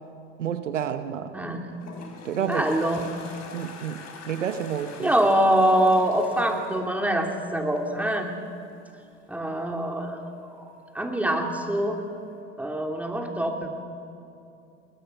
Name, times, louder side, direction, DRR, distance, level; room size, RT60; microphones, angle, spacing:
voice 1, 0.4-1.3 2.2-2.6 3.5-5.1, right 8 dB, 90° right, 10 dB, 1.0 m, -30 dB
voice 2, 1.3-1.7 2.5-3.0 5.0-8.3 9.3-10.2 10.6-10.7 10.9-12.0 12.6-13.7, right 1 dB, 5° right, 2 dB, 3.0 m, -24 dB
Toilet flush, 1.4-7.8, left 4 dB, 45° left, 4.5 m, -44 dB
21.0 x 20.5 x 7.0 m, 2.6 s
hypercardioid pair, 70°, 36 cm